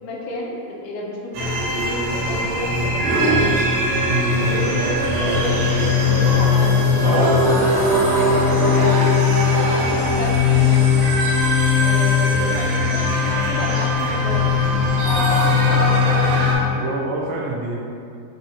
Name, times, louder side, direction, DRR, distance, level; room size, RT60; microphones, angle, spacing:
voice 1, 0.0-3.5 4.5-9.1 9.5-11.2 11.8-14.5 15.2-16.3, left 2 dB, 80° left, -2 dB, 3.0 m, -31 dB
sound 1, 1.3-16.5, left 3 dB, 70° right, 2.8 m, -18 dB
voice 2, 4.1-4.7 15.6-15.7 16.7-17.8, right 3 dB, 85° right, -1 dB, 2.9 m, -27 dB
9.4 x 4.1 x 2.7 m, 2.5 s
omnidirectional pair, 5.4 m